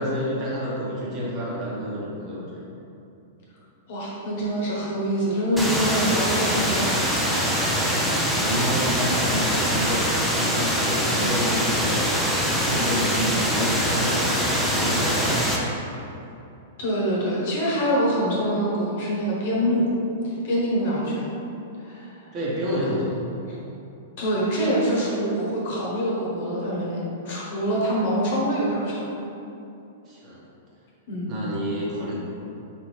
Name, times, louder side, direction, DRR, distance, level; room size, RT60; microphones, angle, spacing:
voice 1, 0.0-2.6 8.3-12.1 12.6-15.5 22.3-23.2 27.7-27.9 30.1-30.4 31.3-32.1, equal, 35° right, -7 dB, 1.2 m, -29 dB
voice 2, 3.9-7.0 16.8-19.8 20.4-21.2 21.8-22.1 23.5-23.6 24.2-27.0 27.2-29.1 31.1-31.4, equal, 55° left, -5 dB, 1.1 m, -25 dB
sound 1, 5.6-15.6, equal, ahead, 0.6 m, -23 dB
4.5 x 2.6 x 3.3 m, 2.8 s
hypercardioid pair, 110°, 0 cm